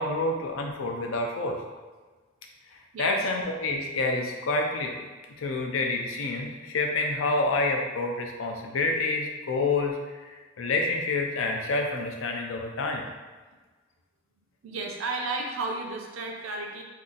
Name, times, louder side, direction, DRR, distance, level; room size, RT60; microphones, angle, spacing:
voice 1, 0.0-1.6 3.0-5.1 5.4-10.3 10.6-13.0, left 2 dB, 75° left, 2 dB, 0.5 m, -28 dB
voice 2, 2.9-3.4 14.6-16.8, right 3 dB, 85° right, 1 dB, 0.5 m, -33 dB
2.7 x 2.4 x 3.8 m, 1.3 s
head